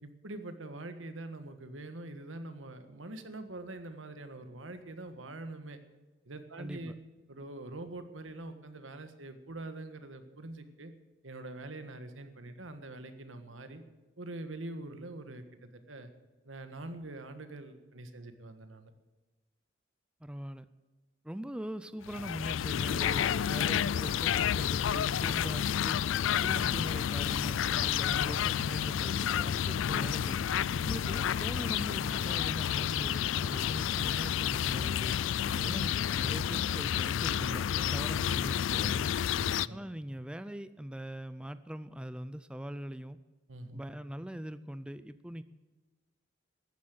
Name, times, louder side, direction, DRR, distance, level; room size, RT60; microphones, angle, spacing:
voice 1, 0.0-5.8 6.3-6.9 7.3-10.9 11.2-13.8 14.2-16.1 16.4-18.9 23.1-23.4 28.3-28.5 35.4-35.7 39.4-39.8 43.5-43.8, right 2 dB, 85° right, 9 dB, 1.6 m, -44 dB
voice 2, 6.6-6.9 20.2-20.7 21.2-26.0 26.4-30.4 30.8-35.2 35.6-39.1 39.7-43.2 43.7-45.4, equal, 5° right, 13 dB, 0.4 m, -41 dB
sound 1, 22.1-39.7, left 9 dB, 75° left, 0.4 m, -30 dB
14.0 x 9.8 x 7.8 m, 1.3 s
head